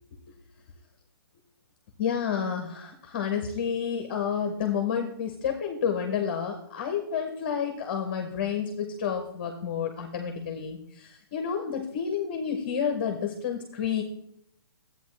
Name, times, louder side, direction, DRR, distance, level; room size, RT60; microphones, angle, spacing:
voice 1, 2.0-14.0, left 7 dB, 25° left, 4 dB, 0.7 m, -30 dB
11.5 x 8.1 x 3.2 m, 0.72 s
hypercardioid pair, 175°, 13 cm